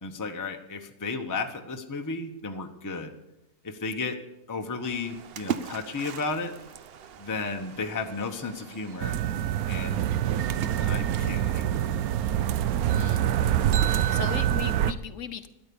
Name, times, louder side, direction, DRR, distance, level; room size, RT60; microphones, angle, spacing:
voice 1, 0.0-3.1 3.6-4.2 4.5-6.5 7.2-9.2 9.7-10.1 10.7-12.0, left 3 dB, 15° left, 4 dB, 0.7 m, -33 dB
Splash splatter, 4.8-14.8, right 8 dB, 55° right, 0.7 m, -42 dB
sound 1, 9.0-14.9, right 11 dB, 75° right, 1.1 m, -25 dB
voice 2, 12.8-13.3 13.9-15.5, left 8 dB, 60° left, 11 dB, 1.1 m, -37 dB
12.5 x 9.9 x 6.9 m, 0.94 s
omnidirectional pair, 1.6 m